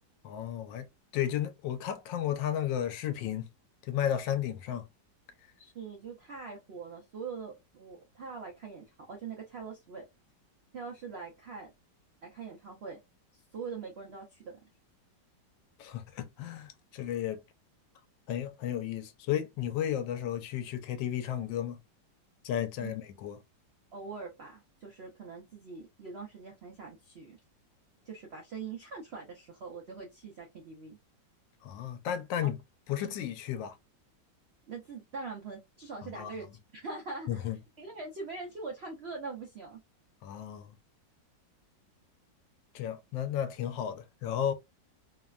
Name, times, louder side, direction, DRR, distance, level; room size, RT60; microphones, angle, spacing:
voice 1, 0.2-0.9 1.1-3.5 3.9-4.8 15.8-17.4 18.3-21.8 22.4-23.4 31.6-32.6 32.9-33.8 36.0-36.3 37.3-37.6 40.2-40.6 42.7-44.5, left 10 dB, 85° left, 1.3 m, -33 dB
voice 2, 5.6-10.1 10.7-11.7 12.2-13.0 13.3-14.6 22.8-22.9 23.9-27.4 28.1-31.0 32.4-32.5 33.0-33.2 34.7-36.5 36.7-37.5 37.8-39.8, right 4 dB, 85° right, 0.5 m, -43 dB
3.1 x 2.1 x 2.3 m
omnidirectional pair, 1.9 m